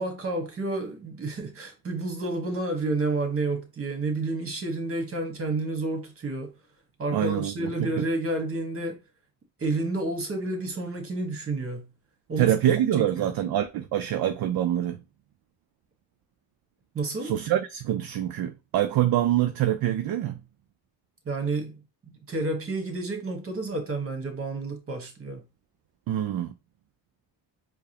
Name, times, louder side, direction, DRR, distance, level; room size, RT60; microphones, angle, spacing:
voice 1, 0.0-6.5 7.0-9.0 9.6-11.9 12.3-12.5 13.0-13.3 16.9-17.3 21.2-21.8 22.3-25.5, right 2 dB, 30° right, 1.3 m, -30 dB
voice 2, 7.1-8.0 12.4-15.0 17.2-20.4 26.1-26.5, right 11 dB, 55° right, 0.5 m, -25 dB
4.7 x 2.2 x 2.8 m
cardioid pair, 95°, 44 cm